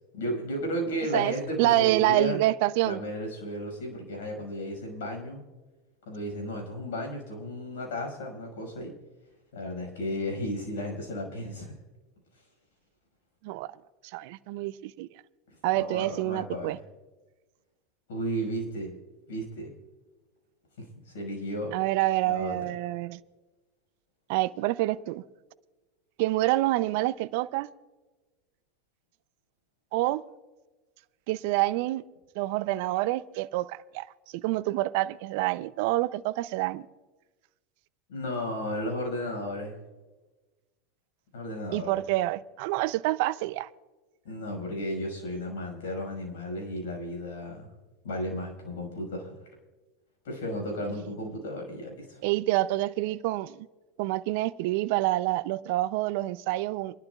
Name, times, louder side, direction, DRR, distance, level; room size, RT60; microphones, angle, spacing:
voice 1, 0.1-2.4 2.8-5.4 6.1-8.9 9.5-11.8 15.7-16.8 18.1-18.9 19.3-19.7 20.8-21.7 22.3-22.6 38.1-39.8 41.3-42.0 44.2-47.7 48.0-49.4 50.2-52.2, equal, 80° left, 5.8 m, -34 dB
voice 2, 1.6-3.0 13.4-13.7 14.1-15.1 15.6-16.8 21.7-23.2 24.3-25.2 26.2-27.7 29.9-30.2 31.3-32.0 32.4-34.1 34.3-36.9 41.7-43.7 52.2-53.7 54.0-57.0, right 17 dB, 65° right, 0.5 m, -27 dB
29.0 x 11.5 x 2.4 m
hypercardioid pair, 95°, 0 cm